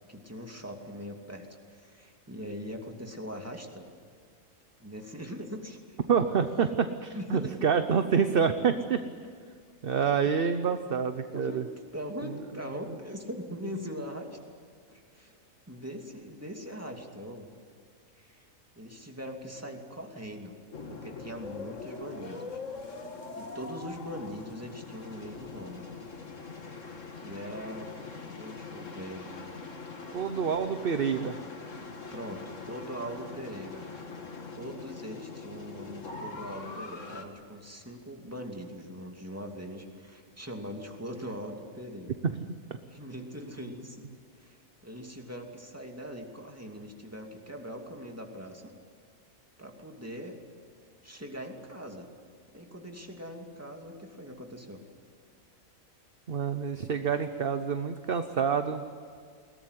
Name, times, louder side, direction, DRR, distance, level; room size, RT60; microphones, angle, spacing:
voice 1, 0.1-3.9 4.8-6.0 7.1-7.5 11.3-11.6 11.9-14.3 14.9-15.4 15.7-17.5 18.2-18.5 18.8-20.5 20.9-22.6 23.4-25.8 26.8-27.9 28.2-29.3 32.1-33.9 34.5-42.2 42.9-44.0 44.4-44.6 44.8-48.7 49.6-50.4 51.0-52.1 52.5-54.8, equal, 10° right, 2 dB, 2.6 m, -41 dB
voice 2, 6.1-9.0 9.8-11.6 30.1-31.4 42.2-42.4 56.3-58.8, right 6 dB, 50° right, 9 dB, 1.0 m, -27 dB
sound 1, 20.7-37.2, left 4 dB, 65° left, 2.3 m, -42 dB
21.5 x 18.5 x 9.9 m, 2.2 s
omnidirectional pair, 1.4 m